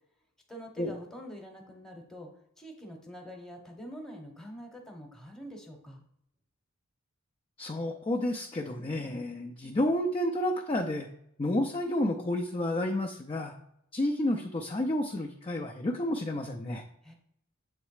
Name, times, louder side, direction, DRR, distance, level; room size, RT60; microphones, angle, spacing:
voice 1, 0.5-2.3 2.6-6.0 17.0-17.1, equal, ahead, 2 dB, 0.9 m, -45 dB
voice 2, 7.6-11.1 11.4-13.5 13.9-16.8, left 1 dB, 25° left, 2 dB, 0.4 m, -30 dB
7.4 x 3.1 x 4.8 m, 0.74 s
head